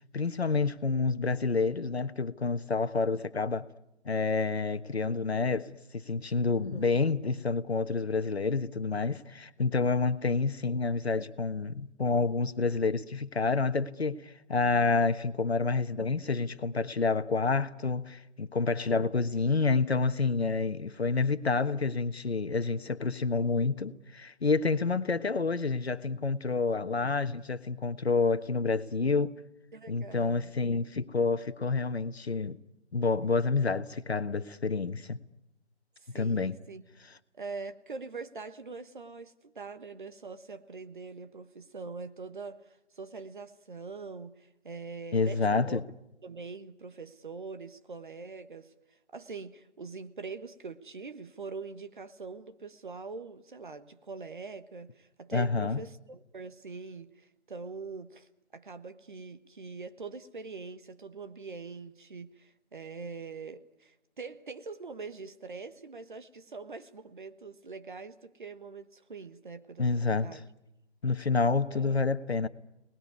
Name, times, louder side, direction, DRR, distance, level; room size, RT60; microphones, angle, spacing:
voice 1, 0.1-3.7 4.0-29.4 29.9-32.6 32.9-35.2 36.1-36.6 45.1-45.8 55.3-55.8 69.8-70.4 71.0-72.5, left 4 dB, 65° left, 1.4 m, -28 dB
voice 2, 6.5-7.0 29.7-30.5 36.0-36.8 37.3-45.8 46.2-48.7 49.1-70.4 71.7-72.0, right 4 dB, 45° right, 1.3 m, -43 dB
28.5 x 20.0 x 9.6 m
figure-of-eight pair, 155°, 34 cm